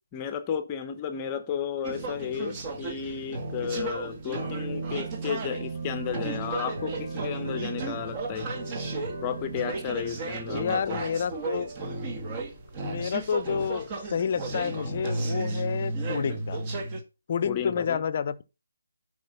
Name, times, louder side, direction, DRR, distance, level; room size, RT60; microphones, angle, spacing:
voice 1, 0.1-8.5 9.2-11.0 17.5-18.0, left 8 dB, 20° left, 1.0 m, -33 dB
sound 1, 1.8-17.0, right 3 dB, 25° right, 1.8 m, -34 dB
sound 2, 2.7-14.3, right 2 dB, 45° right, 3.8 m, -45 dB
voice 2, 10.5-11.7 12.8-16.6 17.3-18.4, left 7 dB, 35° left, 0.8 m, -29 dB
10.5 x 5.1 x 5.7 m
figure-of-eight pair, 150°, 0 cm